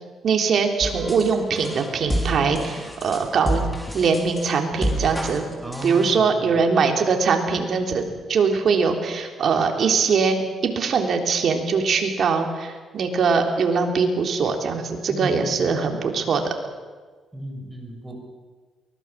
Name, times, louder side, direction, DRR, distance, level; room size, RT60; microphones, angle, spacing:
voice 1, 0.2-3.6 3.9-5.4 5.8-16.5, right 5 dB, 55° right, 3 dB, 3.6 m, -22 dB
sound 1, 0.8-6.1, equal, 10° left, 5.7 m, -29 dB
voice 2, 5.6-6.6 15.1-16.0 17.3-18.2, right 1 dB, 10° right, 2 dB, 6.2 m, -35 dB
23.5 x 19.5 x 7.5 m, 1.5 s
cardioid pair, 90°, 0 cm